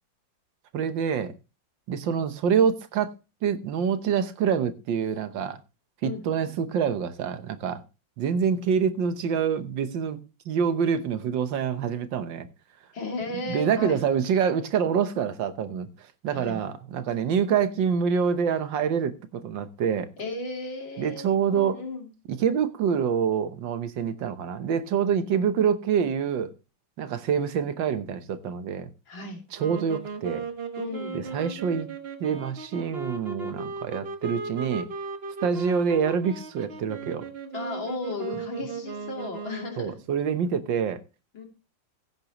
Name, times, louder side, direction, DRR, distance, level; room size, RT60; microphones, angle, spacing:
voice 1, 0.7-1.3 1.9-3.1 3.4-5.6 6.0-7.8 8.2-10.2 10.5-12.5 13.4-15.9 16.2-20.1 21.0-21.8 22.3-26.5 27.0-28.9 29.5-30.4 31.1-31.9 32.2-34.9 35.4-37.3 39.8-41.0, right 7 dB, 75° right, 1.7 m, -26 dB
voice 2, 12.9-14.0 16.3-16.6 20.2-22.1 29.1-29.4 30.8-31.2 37.5-39.9 41.3-41.5, left 3 dB, 85° left, 3.7 m, -35 dB
sound 1, 29.6-40.0, right 4 dB, 35° right, 1.3 m, -37 dB
15.5 x 9.0 x 3.0 m
omnidirectional pair, 2.0 m